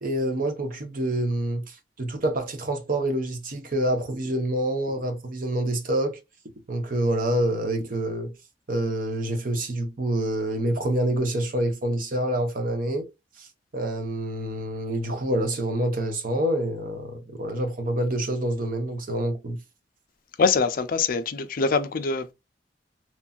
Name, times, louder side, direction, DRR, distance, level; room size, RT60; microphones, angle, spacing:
voice 1, 0.0-6.2 6.7-8.3 8.7-13.1 13.4-13.5 13.7-19.6, right 1 dB, 50° right, 0.8 m, -27 dB
voice 2, 20.4-22.3, left 4 dB, 50° left, 0.4 m, -24 dB
3.0 x 2.6 x 2.3 m
head